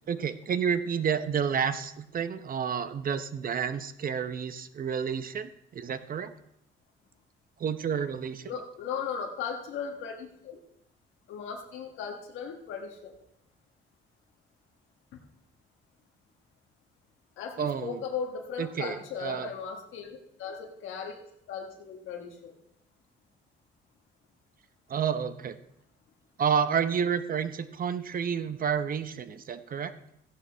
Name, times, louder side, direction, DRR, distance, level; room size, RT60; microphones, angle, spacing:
voice 1, 0.1-6.3 7.6-8.5 17.6-18.0 18.6-19.5 24.9-25.6 26.4-29.9, right 7 dB, 45° right, 12 dB, 0.8 m, -30 dB
voice 2, 8.4-10.6 11.3-13.1 15.1-15.2 17.4-22.5, left 6 dB, 90° left, 0 dB, 1.3 m, -37 dB
14.0 x 10.5 x 3.4 m, 0.77 s
cardioid pair, 90°, 20 cm